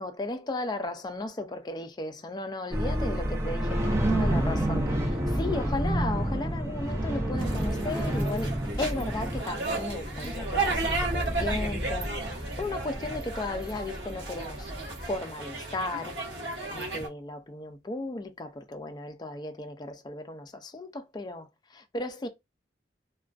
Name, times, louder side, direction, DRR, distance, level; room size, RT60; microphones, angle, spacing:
voice 1, 0.0-14.7 15.0-16.2 16.7-22.3, left 2 dB, 25° left, 0.3 m, -35 dB
sound 1, 2.7-15.2, right 1 dB, 15° right, 0.6 m, -30 dB
sound 2, 7.4-17.1, right 3 dB, 65° right, 0.9 m, -34 dB
2.4 x 2.2 x 2.3 m
head